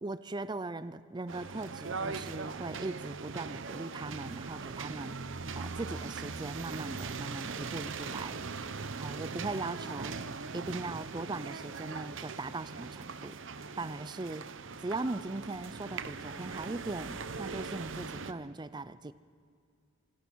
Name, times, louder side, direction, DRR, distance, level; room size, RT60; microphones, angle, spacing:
voice 1, 0.0-5.2 5.5-8.5 8.9-10.2 10.5-13.4 13.8-14.5 14.8-19.1, right 2 dB, 20° right, 14 dB, 0.4 m, -39 dB
sound 1, 1.3-18.3, right 4 dB, 65° right, 0.8 m, -40 dB
26.0 x 18.5 x 6.2 m, 2.3 s
head